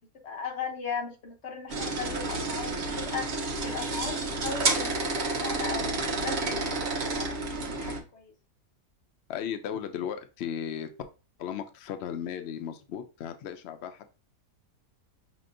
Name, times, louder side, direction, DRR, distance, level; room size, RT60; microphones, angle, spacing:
voice 1, 0.2-7.4 7.7-8.3, left 5 dB, 50° left, 1.0 m, -37 dB
sound 1, 1.7-8.0, right 3 dB, 50° right, 1.0 m, -30 dB
voice 2, 9.3-10.9 11.4-14.2, left 9 dB, 85° left, 0.5 m, -36 dB
5.2 x 2.9 x 2.5 m
omnidirectional pair, 1.6 m